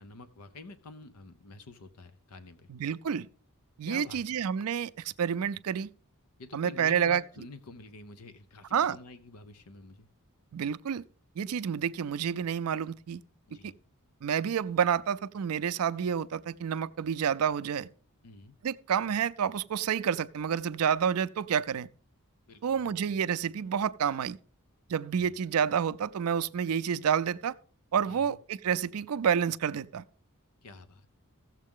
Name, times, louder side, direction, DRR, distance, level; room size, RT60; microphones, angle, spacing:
voice 1, 0.0-2.7 3.9-4.4 6.4-10.1 13.5-13.7 18.2-18.6 22.5-23.0 25.1-25.4 28.1-28.4 30.6-31.1, left 3 dB, 90° left, 0.7 m, -48 dB
voice 2, 2.7-3.3 3.8-5.9 6.5-7.2 8.7-9.0 10.5-11.0 11.4-13.2 13.6-13.7 14.2-17.9 18.6-21.9 22.6-24.4 24.9-27.6 27.9-30.0, right 8 dB, 75° right, 0.4 m, -29 dB
15.0 x 7.3 x 3.6 m
head